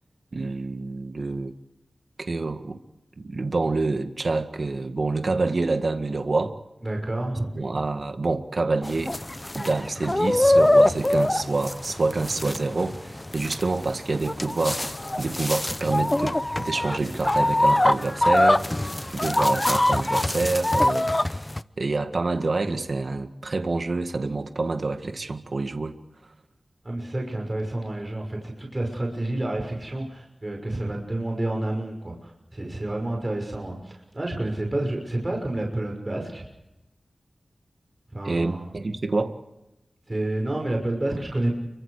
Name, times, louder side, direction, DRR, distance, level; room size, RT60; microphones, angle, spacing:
voice 1, 0.3-1.5 2.2-2.8 3.2-6.6 7.6-9.1 9.5-14.8 15.2-21.4 21.8-25.9 38.3-39.4, right 3 dB, 55° right, 7 dB, 1.9 m, -27 dB
voice 2, 6.8-7.5 26.8-36.5 38.1-38.7 40.1-41.5, right 1 dB, 25° right, 1 dB, 5.9 m, -29 dB
sound 1, 8.8-21.6, left 1 dB, 20° left, 0.7 m, -23 dB
30.0 x 24.0 x 5.0 m, 0.93 s
wide cardioid pair, 90°, 0 cm